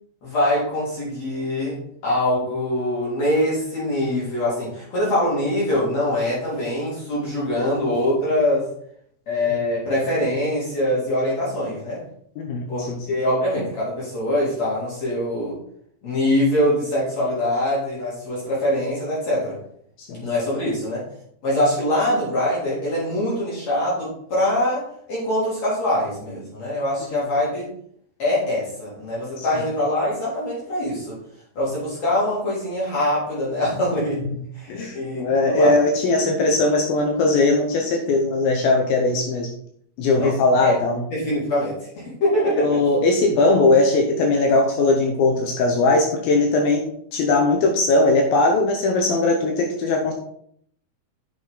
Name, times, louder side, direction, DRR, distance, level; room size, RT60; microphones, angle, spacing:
voice 1, 0.2-8.7 9.3-12.0 12.7-15.6 16.0-19.6 20.2-21.0 21.4-24.8 25.1-27.7 28.2-31.2 31.6-34.3 34.6-35.7 40.2-40.3 40.6-40.8 41.1-42.8, left 1 dB, 45° left, -7 dB, 4.2 m, -23 dB
voice 2, 12.4-13.0 20.1-20.3 29.4-29.5 34.3-34.4 34.7-39.5 40.0-41.0 42.6-46.8 47.1-50.1, left 2 dB, 75° left, 2 dB, 2.6 m, -19 dB
8.9 x 6.0 x 3.9 m, 0.65 s
omnidirectional pair, 4.6 m